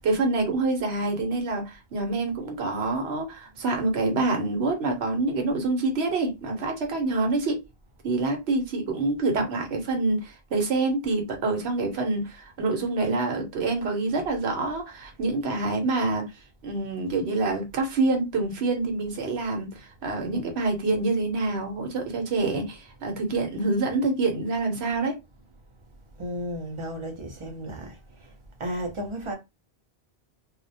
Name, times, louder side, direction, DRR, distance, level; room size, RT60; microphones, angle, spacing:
voice 1, 0.0-7.6 8.0-16.3 16.6-25.2, right 3 dB, 80° right, 1.0 m, -26 dB
voice 2, 26.2-28.0 28.6-29.3, equal, 35° right, 0.6 m, -33 dB
2.3 x 2.0 x 2.6 m
omnidirectional pair, 1.1 m